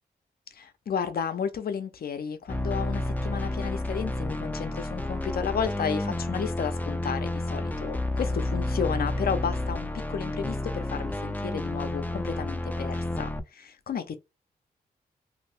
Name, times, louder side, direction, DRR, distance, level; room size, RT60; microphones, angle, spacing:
voice 1, 0.5-14.2, left 7 dB, 60° left, 0.6 m, -32 dB
sound 1, 2.5-13.4, left 1 dB, 10° left, 0.5 m, -30 dB
2.6 x 2.5 x 3.2 m
supercardioid pair, 45°, 17 cm